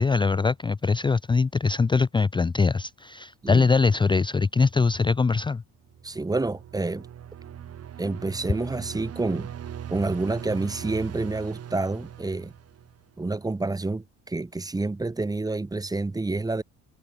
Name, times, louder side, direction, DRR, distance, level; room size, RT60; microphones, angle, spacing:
voice 1, 0.0-5.6, left 4 dB, 15° left, 0.6 m, -22 dB
sound 1, 5.9-13.2, right 9 dB, 45° right, 6.4 m, -40 dB
voice 2, 6.0-7.0 8.0-9.5 9.9-12.5 13.2-16.6, right 3 dB, 10° right, 1.2 m, -28 dB
cardioid pair, 110°, 33 cm